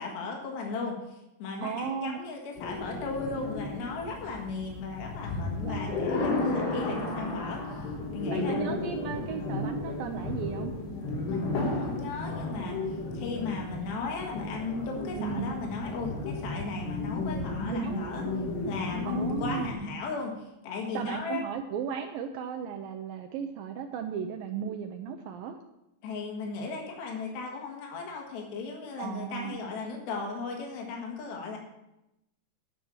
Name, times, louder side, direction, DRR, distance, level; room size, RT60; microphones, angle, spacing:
voice 1, 0.0-7.9 8.1-8.7 11.3-18.3 18.7-21.4 26.0-31.6, left 4 dB, 70° left, 0 dB, 3.4 m, -36 dB
voice 2, 1.6-2.2 5.6-6.2 8.3-10.8 15.2-15.5 17.7-18.3 19.0-19.7 20.9-25.6 29.0-29.6, right 7 dB, 80° right, 5 dB, 2.1 m, -35 dB
sound 1, 2.6-19.7, left 2 dB, 90° left, 4.2 m, -33 dB
10.5 x 6.1 x 7.1 m, 0.89 s
omnidirectional pair, 4.7 m